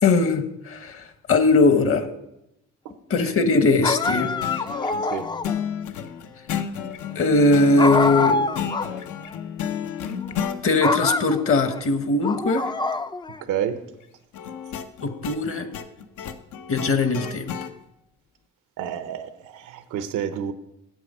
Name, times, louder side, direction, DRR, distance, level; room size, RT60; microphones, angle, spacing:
voice 1, 0.0-2.1 3.1-4.3 7.1-8.4 10.6-12.7 15.0-15.7 16.7-17.5, left 3 dB, 45° left, 10 dB, 1.1 m, -20 dB
sound 1, 3.8-5.6 7.8-9.0 9.3-9.4 10.2-10.5 10.8-11.8 12.2-13.4, left 3 dB, 15° left, 0.3 m, -25 dB
sound 2, 4.0-10.6 14.3-17.7, left 8 dB, 75° left, 0.7 m, -32 dB
voice 2, 18.8-20.5, right 9 dB, 85° right, 11 dB, 0.8 m, -29 dB
8.9 x 7.7 x 5.4 m, 0.87 s
cardioid pair, 90°, 30 cm